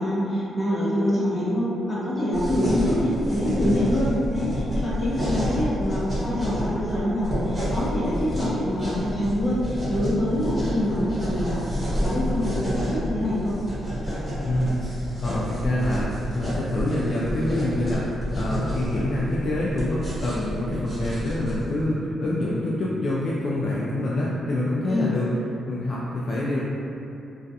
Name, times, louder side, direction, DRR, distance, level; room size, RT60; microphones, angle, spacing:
voice 1, 0.0-13.6 24.9-25.2, left 1 dB, 20° left, -9 dB, 0.8 m, -25 dB
sound 1, 2.3-21.8, equal, 20° right, 1.1 m, -29 dB
voice 2, 14.4-25.3 25.6-26.6, left 1 dB, 50° left, -7 dB, 0.3 m, -26 dB
2.3 x 2.3 x 2.6 m, 2.8 s
cardioid pair, 110°, 0 cm